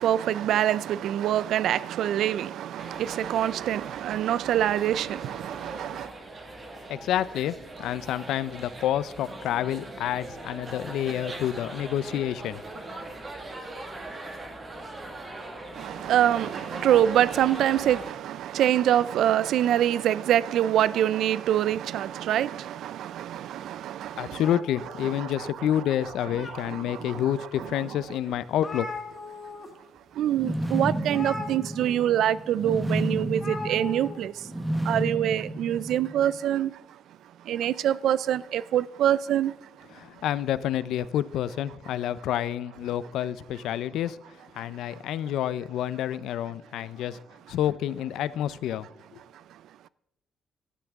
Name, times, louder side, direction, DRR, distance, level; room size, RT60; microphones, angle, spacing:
voice 1, 0.0-6.1 15.7-24.4 25.0-25.7 26.4-27.9 30.1-34.5 34.8-37.0 37.4-39.7 44.6-45.0 49.3-49.9, right 11 dB, 65° right, 0.4 m, -25 dB
sound 1, 2.8-18.1, right 2 dB, 25° right, 1.7 m, -41 dB
voice 2, 6.9-12.6 24.1-28.9 39.9-44.2 44.5-47.2 47.5-48.9 49.1-49.2, left 11 dB, 80° left, 0.5 m, -29 dB
sound 2, 24.4-25.6 26.1-27.0 27.6-27.7 28.0-28.1 28.3-29.7 30.0-30.2 31.1-32.1 33.3-34.2, left 3 dB, 25° left, 1.6 m, -39 dB
sound 3, 30.3-36.4, right 1 dB, 10° right, 1.1 m, -31 dB
16.0 x 12.5 x 3.6 m
cardioid pair, 180°, 0 cm